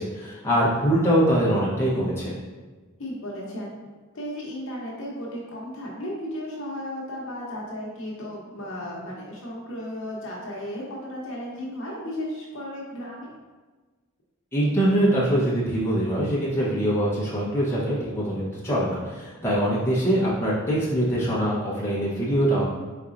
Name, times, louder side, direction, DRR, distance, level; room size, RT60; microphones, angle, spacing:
voice 1, 0.0-2.3 14.5-22.6, right 1 dB, 10° left, -8 dB, 0.9 m, -23 dB
voice 2, 3.0-3.8 4.1-13.3, left 1 dB, 65° left, -3 dB, 1.0 m, -34 dB
4.4 x 4.0 x 2.5 m, 1.3 s
head